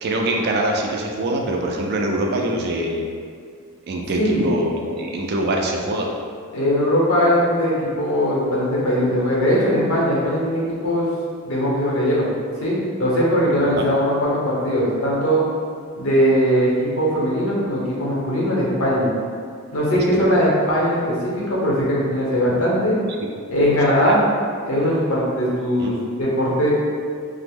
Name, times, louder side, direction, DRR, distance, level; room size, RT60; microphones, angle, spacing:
voice 1, 0.0-3.0 3.9-6.1 13.7-13.9 19.9-20.0 24.1-24.2 25.8-25.9, right 1 dB, 50° right, 1 dB, 0.3 m, -24 dB
voice 2, 4.1-4.5 6.5-11.1 11.4-12.3 12.6-15.4 16.0-19.1 19.7-23.0 23.5-24.2 24.6-26.7, equal, 70° left, -6 dB, 0.8 m, -20 dB
2.9 x 2.0 x 3.4 m, 2.1 s
head